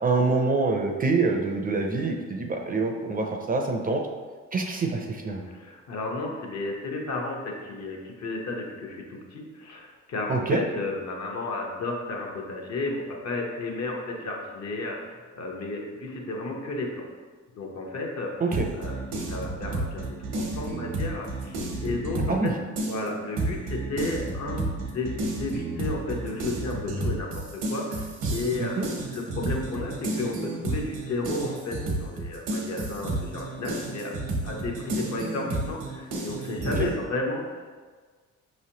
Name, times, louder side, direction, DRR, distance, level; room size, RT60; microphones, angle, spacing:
voice 1, 0.0-4.0 4.5-5.5 10.3-10.6 18.4-18.7 22.3-22.5 28.6-28.9 36.8-36.9, right 3 dB, 30° right, 2 dB, 0.5 m, -26 dB
voice 2, 5.4-17.0 17.5-18.3 18.8-19.0 19.3-20.0 20.3-22.5 22.9-34.1 34.4-37.8, left 2 dB, 60° left, 0 dB, 0.9 m, -33 dB
sound 1, 18.5-22.5 22.8-36.9, right 2 dB, 80° right, 0.9 m, -31 dB
5.2 x 3.1 x 2.8 m, 1.5 s
cardioid pair, 90°, 30 cm